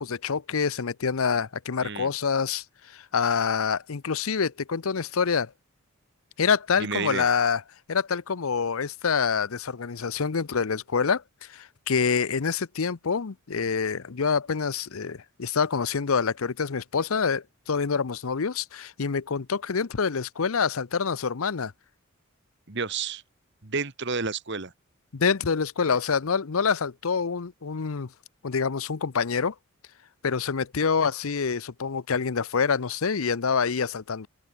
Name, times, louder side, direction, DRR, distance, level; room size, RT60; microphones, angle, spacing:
voice 1, 0.0-5.5 6.4-7.6 7.9-21.7 25.1-28.1 28.4-29.5 30.2-34.3, left 5 dB, 75° left, 0.7 m, -26 dB
voice 2, 1.8-2.1 6.8-7.3 22.7-23.2 23.6-24.7, right 5 dB, 55° right, 1.6 m, -30 dB
head